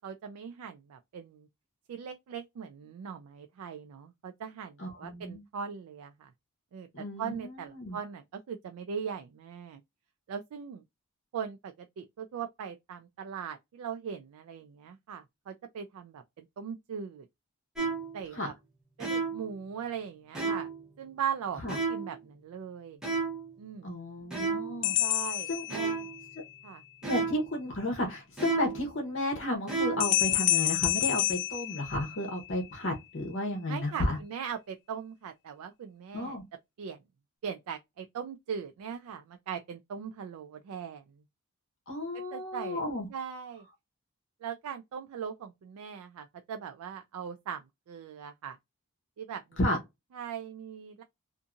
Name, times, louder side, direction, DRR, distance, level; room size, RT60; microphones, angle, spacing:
voice 1, 0.0-1.5 1.9-6.3 6.7-9.8 10.3-10.8 11.3-17.3 18.1-18.5 19.0-20.7 21.0-23.0 23.6-23.9 25.0-26.1 26.6-26.8 33.7-36.4 36.8-37.0 37.4-41.0 42.1-42.8 43.1-43.6 44.4-48.6 49.2-49.6 50.1-51.0, right 7 dB, 80° right, 0.3 m, -40 dB
voice 2, 4.8-5.4 6.9-8.0 18.3-18.5 21.6-21.8 23.8-24.9 25.5-25.6 27.0-34.2 36.1-36.4 41.9-43.1 49.6-49.8, left 1 dB, 55° left, 0.9 m, -33 dB
sound 1, 17.8-18.2 19.0-19.5 20.3-20.8 21.7-22.2 23.0-23.5 24.3-24.8 25.7-26.2 27.0-27.5 28.4-28.9 29.7-30.2, right 4 dB, 5° right, 0.9 m, -32 dB
sound 2, 24.8-26.4 30.0-32.5, left 14 dB, 85° left, 0.3 m, -29 dB
2.6 x 2.5 x 2.4 m
head